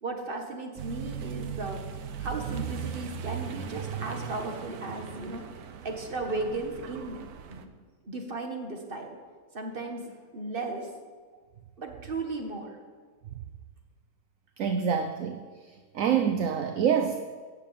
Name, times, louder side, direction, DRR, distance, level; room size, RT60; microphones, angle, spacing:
voice 1, 0.0-5.4 5.8-7.2 7.5-7.7 8.0-9.2 9.5-10.9 11.8-12.8, right 2 dB, 40° right, 3 dB, 1.8 m, -36 dB
Accelerating revving vroom, 0.8-7.6, right 8 dB, 90° right, 1.4 m, -38 dB
voice 2, 14.6-15.4 15.9-17.2, right 7 dB, 65° right, 7 dB, 1.1 m, -26 dB
13.0 x 7.5 x 8.7 m, 1.5 s
omnidirectional pair, 1.5 m